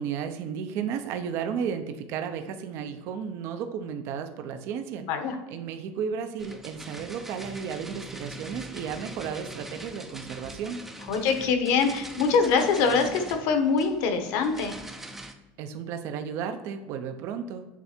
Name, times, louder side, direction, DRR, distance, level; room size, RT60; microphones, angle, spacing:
voice 1, 0.0-5.0 5.5-10.8 15.6-17.7, right 7 dB, 50° right, 7 dB, 0.7 m, -33 dB
sound 1, 6.4-15.3, right 1 dB, 5° right, 0.5 m, -42 dB
voice 2, 11.1-14.8, left 5 dB, 60° left, 6 dB, 1.1 m, -24 dB
8.4 x 3.4 x 4.3 m, 1.1 s
cardioid pair, 160°, 6 cm